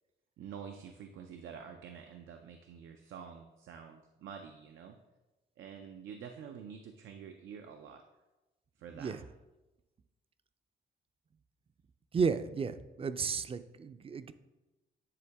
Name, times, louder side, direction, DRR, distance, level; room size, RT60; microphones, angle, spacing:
voice 1, 0.4-5.0 5.6-8.0 8.8-9.3, right 7 dB, 90° right, 4 dB, 0.5 m, -48 dB
voice 2, 12.1-14.3, right 5 dB, 30° right, 12 dB, 0.4 m, -33 dB
9.9 x 3.9 x 3.4 m, 1.1 s
cardioid pair, 100°, 19 cm